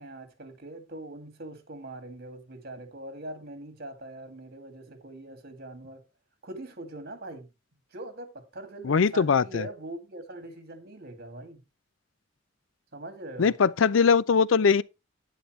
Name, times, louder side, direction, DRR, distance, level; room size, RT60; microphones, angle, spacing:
voice 1, 0.0-6.0 6.4-7.5 7.9-11.6 12.9-13.5, right 1 dB, 55° right, 2.4 m, -42 dB
voice 2, 8.8-9.7 13.4-14.8, left 5 dB, 85° left, 0.5 m, -21 dB
10.5 x 9.7 x 3.2 m
head